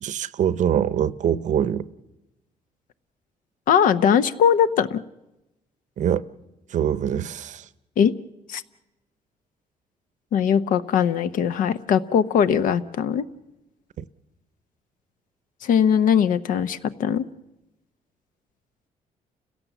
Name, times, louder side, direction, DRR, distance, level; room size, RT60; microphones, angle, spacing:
voice 1, 0.0-1.9 6.0-6.2 6.7-7.7 14.0-14.1, right 9 dB, 60° right, 0.7 m, -24 dB
voice 2, 3.7-5.0 8.0-8.2 8.5-8.6 10.3-13.2 15.6-17.2, left 8 dB, 75° left, 0.8 m, -20 dB
30.0 x 16.5 x 7.1 m
cardioid pair, 110°, 14 cm